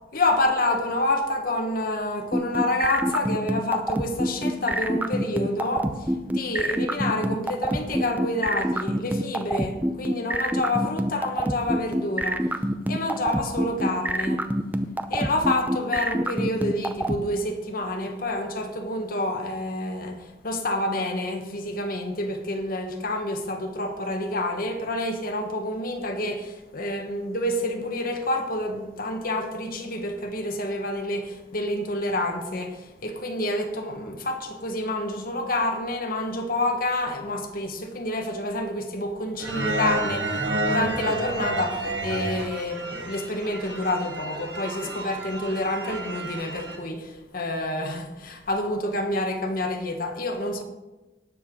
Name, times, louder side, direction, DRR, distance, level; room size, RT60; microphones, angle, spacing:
voice 1, 0.1-12.5 12.9-14.4 15.1-50.6, left 1 dB, 55° left, 1.4 m, -28 dB
sound 1, 2.3-17.2, right 1 dB, 10° right, 0.6 m, -25 dB
sound 2, 39.4-46.8, right 2 dB, 80° right, 1.7 m, -30 dB
19.0 x 6.6 x 3.8 m
head